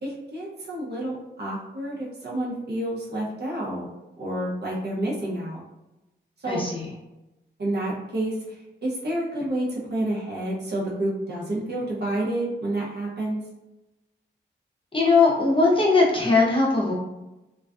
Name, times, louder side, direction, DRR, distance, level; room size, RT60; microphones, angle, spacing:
voice 1, 0.0-3.9 4.2-5.6 6.4-6.6 7.6-8.3 8.8-13.4, right 1 dB, 60° right, -5 dB, 0.7 m, -29 dB
voice 2, 6.5-6.9 14.9-16.9, left 3 dB, 25° left, -3 dB, 0.5 m, -20 dB
2.3 x 2.2 x 2.4 m, 0.99 s
wide cardioid pair, 120°, 19 cm